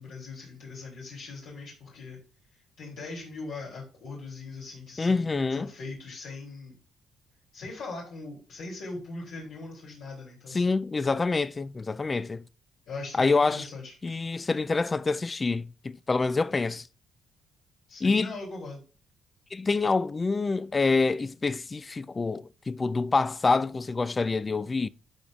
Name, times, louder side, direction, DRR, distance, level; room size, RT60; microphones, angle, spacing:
voice 1, 0.0-2.2 2.5-6.8 7.5-10.7 12.9-13.9 17.9-18.8, left 3 dB, 80° left, 2.9 m, -40 dB
voice 2, 5.0-5.7 10.5-12.4 13.2-13.6 14.0-16.8 18.0-18.3 19.5-24.9, left 3 dB, 30° left, 0.4 m, -26 dB
11.5 x 5.4 x 2.5 m
cardioid pair, 90°, 0 cm